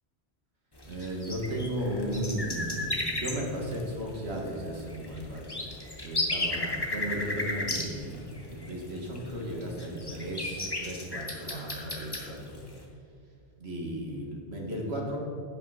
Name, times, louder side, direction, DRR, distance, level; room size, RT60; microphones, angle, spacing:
sound 1, 0.7-12.8, left 2 dB, 20° left, 1.5 m, -35 dB
voice 1, 0.8-5.6 6.0-12.6 13.6-15.2, equal, 75° right, -1 dB, 2.4 m, -35 dB
11.0 x 9.0 x 5.1 m, 2.5 s
omnidirectional pair, 1.1 m